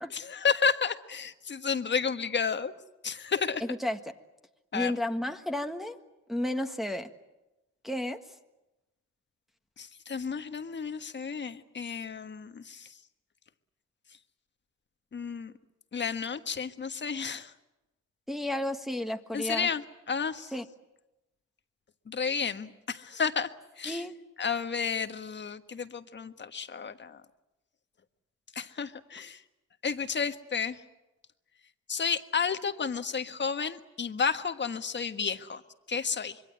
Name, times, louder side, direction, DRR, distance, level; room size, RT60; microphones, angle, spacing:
voice 1, 0.1-2.7 3.0-3.6 4.7-5.0 9.8-12.9 15.1-15.5 15.9-17.5 19.3-20.5 22.1-23.5 23.8-24.0 24.4-27.2 28.5-29.4 29.8-30.8 31.9-35.6 35.9-36.4, left 6 dB, 35° left, 9 dB, 1.5 m, -31 dB
voice 2, 3.6-4.0 4.7-6.0 6.3-7.1 7.8-8.2 18.3-19.7 20.5-20.6 23.9-24.2, left 1 dB, ahead, 4 dB, 1.5 m, -32 dB
26.0 x 22.5 x 8.5 m, 1.0 s
cardioid pair, 90°, 30 cm